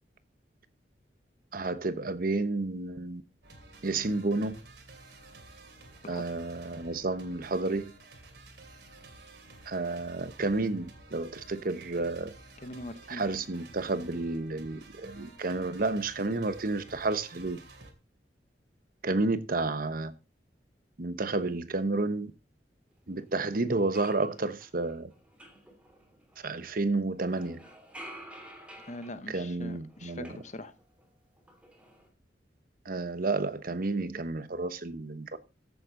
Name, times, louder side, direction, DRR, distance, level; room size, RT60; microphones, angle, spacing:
voice 1, 1.5-3.2 3.8-4.6 6.1-7.8 9.7-12.3 13.1-17.6 19.0-20.1 21.0-22.3 23.1-25.1 26.4-27.6 29.3-30.3 32.8-35.4, right 3 dB, 55° right, 1.0 m, -31 dB
sound 1, 3.4-17.9, right 2 dB, 75° right, 2.7 m, -52 dB
voice 2, 12.6-13.3 28.9-30.7, left 1 dB, 45° left, 1.0 m, -42 dB
sound 2, 23.3-23.4 23.7-26.8 27.2-31.1 31.4-32.1, equal, 5° right, 2.8 m, -51 dB
14.5 x 7.6 x 3.8 m
head